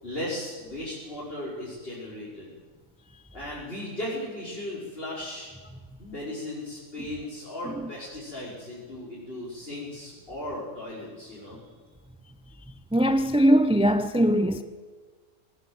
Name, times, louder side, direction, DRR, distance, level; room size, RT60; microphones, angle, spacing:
voice 1, 0.0-2.5 3.3-5.5 6.0-11.6, left 1 dB, 40° left, 5.7 m, -36 dB
voice 2, 12.9-14.6, equal, 5° right, 0.5 m, -21 dB
20.0 x 20.0 x 7.9 m
omnidirectional pair, 1.5 m